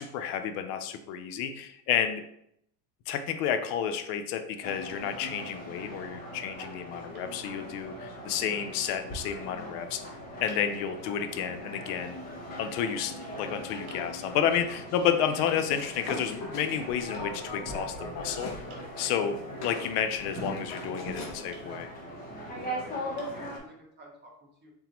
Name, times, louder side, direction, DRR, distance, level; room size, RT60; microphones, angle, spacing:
voice 1, 0.0-2.2 3.1-10.0 10.4-12.2 12.6-18.5 19.0-21.9, left 8 dB, 65° left, 8 dB, 0.6 m, -31 dB
sound 1, 4.6-23.6, equal, 20° left, 0.8 m, -40 dB
sound 2, 7.1-7.3 8.8-9.0 9.9-10.0 10.5-10.7 12.1-12.3 13.9-14.1 15.5-15.7 17.1-17.3 18.7-18.9 21.5-21.7 22.5-22.6 23.2-23.5, right 3 dB, 60° right, 1.5 m, -54 dB
sound 3, 15.7-18.6 19.0-21.4, left 1 dB, 35° left, 1.1 m, -41 dB
voice 2, 22.0-24.7, right 1 dB, 20° right, 0 dB, 0.8 m, -49 dB
3.9 x 3.8 x 2.9 m, 0.73 s
cardioid pair, 155°, 48 cm